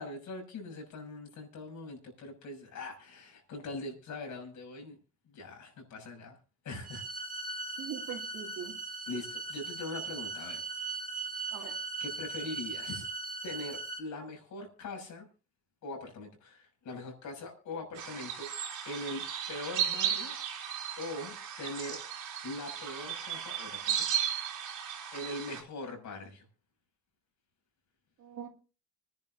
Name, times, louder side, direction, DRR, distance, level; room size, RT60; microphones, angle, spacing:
voice 1, 0.0-5.0 5.3-6.4 6.6-7.1 9.1-10.6 11.5-13.1 13.4-15.3 15.8-18.5 18.8-20.3 21.0-22.0 22.4-24.2 25.1-26.4, left 2 dB, 75° left, 2 dB, 6.4 m, -42 dB
sound 1, 6.8-14.0, right 3 dB, 30° right, 3.0 m, -39 dB
voice 2, 7.8-8.8 11.5-11.7 28.2-28.5, right 9 dB, 70° right, 3 dB, 2.5 m, -41 dB
sound 2, 18.0-25.6, right 9 dB, 85° right, 3.2 m, -35 dB
26.0 x 10.5 x 2.7 m, 0.33 s
cardioid pair, 90°, 30 cm